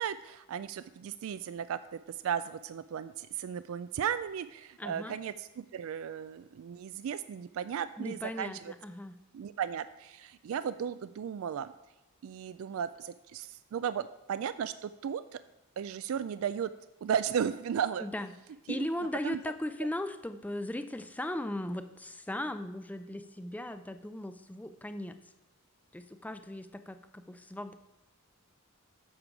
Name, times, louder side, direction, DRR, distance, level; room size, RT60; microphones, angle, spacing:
voice 1, 0.0-8.7 9.3-11.7 12.2-15.4 15.8-16.7 17.0-18.1 18.7-18.9 19.2-19.4, right 8 dB, 70° right, 13 dB, 0.3 m, -35 dB
voice 2, 4.8-5.2 8.0-9.2 18.0-18.3 18.7-25.2 25.9-27.8, left 1 dB, 5° left, 9 dB, 0.4 m, -37 dB
8.8 x 6.8 x 4.7 m, 1.0 s
head